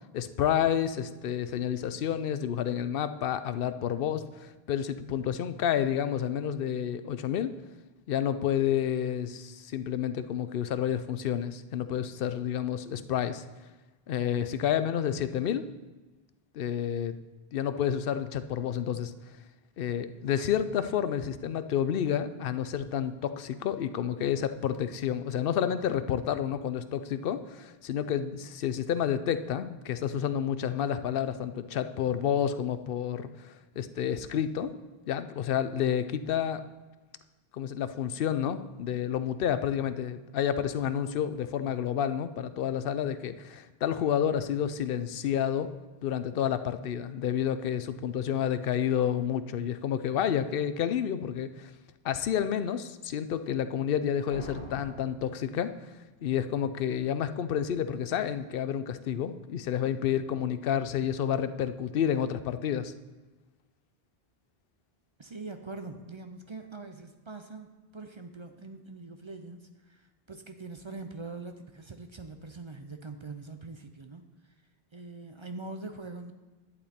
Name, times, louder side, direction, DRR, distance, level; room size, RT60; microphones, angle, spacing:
voice 1, 0.1-7.5 8.1-13.4 14.1-15.6 16.5-17.2 17.5-19.1 19.8-34.7 35.1-36.6 37.5-45.7 46.0-51.7 52.0-55.7 56.2-62.9, left 9 dB, 65° left, 12 dB, 0.8 m, -30 dB
sound 1, 54.3-56.1, equal, 70° right, 3.0 m, -45 dB
voice 2, 65.2-74.2 74.9-76.3, right 3 dB, 35° right, 6 dB, 0.5 m, -43 dB
11.0 x 8.7 x 4.3 m, 1.2 s
omnidirectional pair, 1.0 m